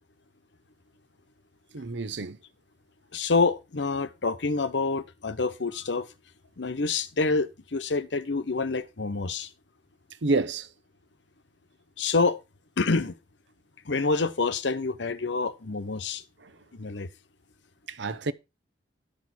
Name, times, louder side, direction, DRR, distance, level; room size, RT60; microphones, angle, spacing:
voice 1, 1.7-2.4 10.2-10.7 16.4-16.5 17.9-18.3, right 3 dB, 75° right, 0.8 m, -28 dB
voice 2, 3.1-6.1 6.6-9.5 12.0-12.4 12.8-13.1 13.8-16.2 16.8-17.1, left 3 dB, 75° left, 0.9 m, -27 dB
12.5 x 6.4 x 4.3 m
head